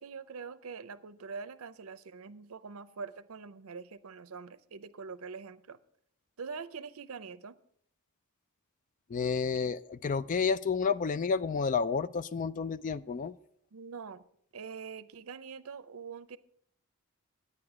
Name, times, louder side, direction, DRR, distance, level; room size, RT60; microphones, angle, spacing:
voice 1, 0.0-5.8 6.4-7.6 9.5-9.7 13.7-14.2 14.5-16.4, right 5 dB, 70° right, 14 dB, 0.6 m, -44 dB
voice 2, 9.1-13.3, left 5 dB, 35° left, 16 dB, 0.3 m, -30 dB
9.7 x 9.6 x 4.9 m, 0.66 s
head